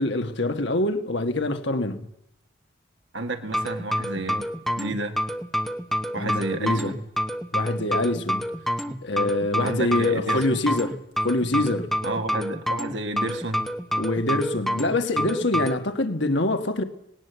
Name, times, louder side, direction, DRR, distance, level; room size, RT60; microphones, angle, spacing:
voice 1, 0.0-2.1 6.2-6.9 7.5-8.4 9.0-11.0 11.2-11.9 14.0-16.8, left 2 dB, 60° left, 1.6 m, -25 dB
voice 2, 3.1-5.2 6.1-7.1 8.9-9.0 9.6-10.7 12.0-13.7, right 2 dB, 60° right, 1.9 m, -31 dB
sound 1, 3.5-15.8, equal, ahead, 1.0 m, -28 dB
19.0 x 18.5 x 8.1 m
head